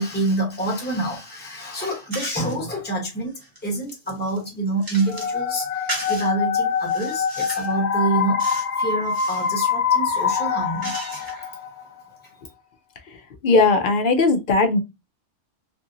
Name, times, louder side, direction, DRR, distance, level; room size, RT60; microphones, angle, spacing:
voice 1, 0.0-11.0, right 2 dB, 10° left, 0.8 m, -27 dB
sound 1, 2.1-2.6 3.2-5.4 5.9-6.3 6.8-7.8 8.4-8.7 9.0-9.5 10.1-11.5, right 1 dB, 20° right, 0.9 m, -36 dB
sound 2, 5.1-11.9, left 6 dB, 85° left, 1.1 m, -24 dB
voice 2, 13.4-14.8, left 3 dB, 60° left, 0.6 m, -18 dB
2.8 x 2.6 x 2.5 m
omnidirectional pair, 1.3 m